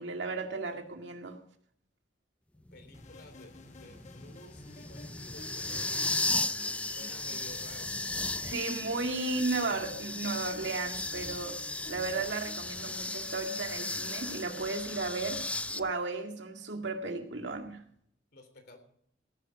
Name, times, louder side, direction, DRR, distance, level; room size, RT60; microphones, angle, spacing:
voice 1, 0.0-1.4 8.4-11.6 11.9-17.8, right 3 dB, 75° right, 3 dB, 2.1 m, -34 dB
voice 2, 2.5-6.1 6.9-7.9 18.3-18.8, left 2 dB, 60° left, 7 dB, 3.3 m, -52 dB
sound 1, 2.7-15.8, left 2 dB, 5° left, 0.4 m, -36 dB
sound 2, 2.9-15.9, left 2 dB, 40° left, 1.0 m, -52 dB
17.5 x 10.0 x 4.9 m, 0.65 s
head